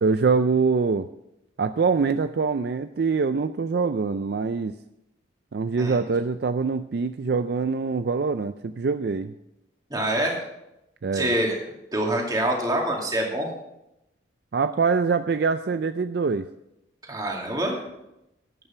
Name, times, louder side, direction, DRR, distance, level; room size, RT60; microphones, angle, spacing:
voice 1, 0.0-1.1 1.6-4.7 5.5-9.3 11.0-11.3 14.5-16.5, right 4 dB, 55° right, 10 dB, 0.4 m, -24 dB
voice 2, 9.9-10.4 11.1-11.5 11.9-13.5 17.1-17.8, right 1 dB, 20° right, -1 dB, 2.4 m, -25 dB
11.0 x 8.8 x 5.8 m, 0.86 s
head